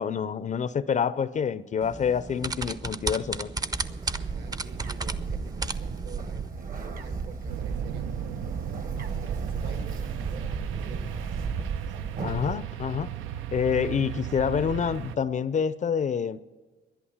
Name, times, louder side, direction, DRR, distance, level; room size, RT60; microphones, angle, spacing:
voice 1, 0.0-3.5 12.2-13.1 13.5-16.5, left 7 dB, 40° left, 0.4 m, -27 dB
sound 1, 1.8-6.5, right 3 dB, 20° right, 0.5 m, -34 dB
Bird, 3.7-12.5, right 5 dB, 45° right, 1.1 m, -34 dB
voice 2, 4.2-8.5 8.8-11.1, right 5 dB, 65° right, 1.5 m, -48 dB
sound 2, 7.5-15.2, right 12 dB, 90° right, 0.4 m, -36 dB
11.5 x 10.5 x 7.1 m
cardioid pair, 90°, 20 cm